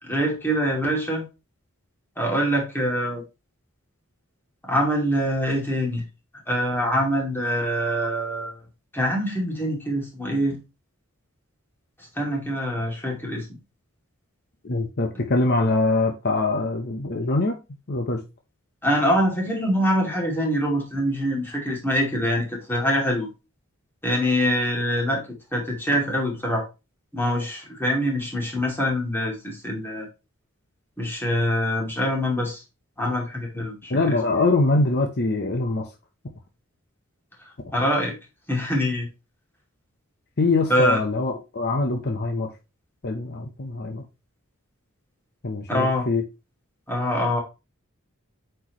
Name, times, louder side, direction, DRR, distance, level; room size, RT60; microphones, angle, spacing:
voice 1, 0.0-1.3 2.2-3.2 4.6-6.0 6.5-8.6 8.9-10.6 12.2-13.6 18.8-23.3 24.0-25.2 25.5-26.6 27.1-30.1 31.0-32.6 33.0-34.2 37.7-38.1 38.5-39.1 40.7-41.0 45.7-46.0 46.9-47.4, equal, 10° left, 2.5 m, -24 dB
voice 2, 14.6-17.6 17.9-18.2 33.9-35.8 40.4-42.5 43.0-44.0 45.4-46.2, left 3 dB, 50° left, 0.9 m, -23 dB
8.2 x 4.6 x 3.0 m
head